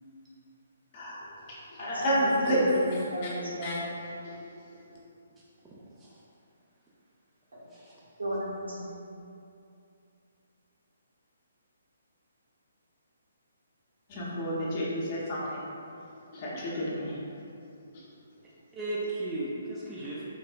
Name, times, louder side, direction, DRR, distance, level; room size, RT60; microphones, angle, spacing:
voice 1, 0.9-2.6 3.2-3.3 3.6-3.8 4.2-4.3 14.1-15.6 16.3-17.1, equal, 40° left, -6 dB, 0.6 m, -30 dB
voice 2, 1.8-3.8 7.5-7.7 8.2-8.9, equal, 80° right, -7 dB, 0.8 m, -35 dB
voice 3, 18.7-20.2, right 2 dB, 15° right, -8 dB, 0.3 m, -35 dB
3.2 x 2.1 x 2.4 m, 2.6 s
figure-of-eight pair, 135°, 0 cm